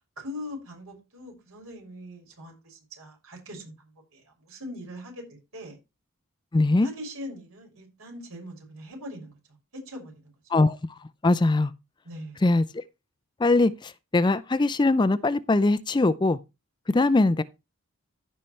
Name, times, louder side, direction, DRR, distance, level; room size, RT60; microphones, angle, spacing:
voice 1, 0.2-3.7 4.1-5.8 6.8-9.3 9.7-10.3 12.0-12.4, left 1 dB, 80° right, 6.0 m, -41 dB
voice 2, 6.5-6.9 10.5-10.8 11.2-11.7 12.4-12.8 13.4-16.4 16.9-17.4, left 2 dB, 20° left, 0.4 m, -21 dB
15.5 x 5.6 x 3.2 m
head